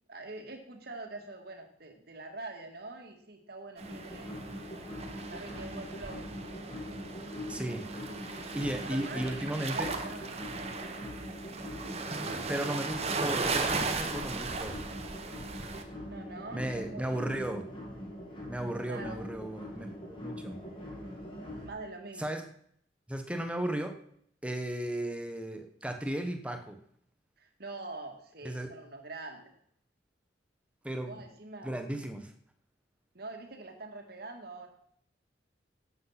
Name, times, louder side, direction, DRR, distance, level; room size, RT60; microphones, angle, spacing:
voice 1, 0.1-4.4 5.3-6.2 7.5-10.8 16.1-17.4 18.9-19.2 21.6-22.3 27.4-29.5 31.1-31.8 33.1-34.7, right 2 dB, 60° right, 4 dB, 2.2 m, -45 dB
sound 1, 3.8-21.7, equal, 30° left, 3.1 m, -43 dB
sound 2, 3.8-15.8, right 4 dB, 35° right, 1.2 m, -37 dB
voice 2, 7.5-7.8 8.2-9.9 12.5-14.8 16.5-17.7 18.5-20.6 22.2-22.4 23.1-24.0 24.4-26.8 28.4-28.7 30.8-31.1 31.6-32.3, right 1 dB, 5° right, 6 dB, 1.2 m, -35 dB
12.0 x 8.2 x 5.9 m, 0.66 s
head